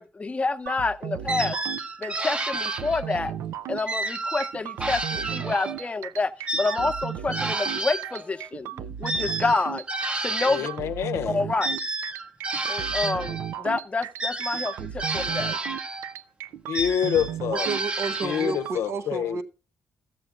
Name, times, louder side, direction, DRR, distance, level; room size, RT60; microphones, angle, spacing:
voice 1, 0.0-1.6 2.0-3.3 3.7-8.7 9.0-9.8 10.2-10.7 11.3-11.8 12.7-15.6, left 3 dB, 25° left, 0.7 m, -28 dB
sound 1, 0.7-18.8, right 10 dB, 90° right, 0.4 m, -36 dB
sound 2, 1.3-3.3 3.9-5.9 6.5-10.8 11.6-13.6 14.2-16.2 16.7-18.7, right 2 dB, 25° right, 0.8 m, -31 dB
voice 2, 10.5-11.4 16.7-17.7 18.2-19.4, left 9 dB, 80° left, 0.6 m, -27 dB
voice 3, 17.5-19.4, right 4 dB, 70° right, 1.0 m, -31 dB
13.5 x 7.7 x 3.7 m
cardioid pair, 85°, 5 cm